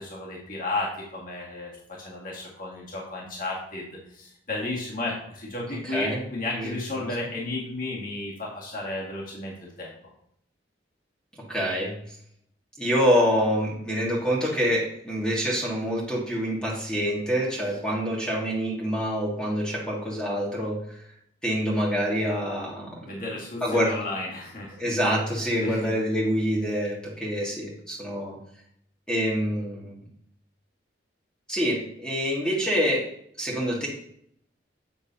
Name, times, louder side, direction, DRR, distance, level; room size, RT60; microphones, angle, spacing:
voice 1, 0.0-1.7 2.0-9.9 23.0-24.8 25.6-25.9, left 2 dB, 45° left, -4 dB, 1.9 m, -33 dB
voice 2, 5.7-6.2 6.6-7.1 11.5-11.9 12.8-20.8 21.4-23.0 23.6-23.9 24.8-28.4 29.1-29.9 31.5-33.1 33.4-33.9, equal, 5° left, -4 dB, 1.6 m, -26 dB
8.3 x 6.2 x 2.7 m, 0.70 s
head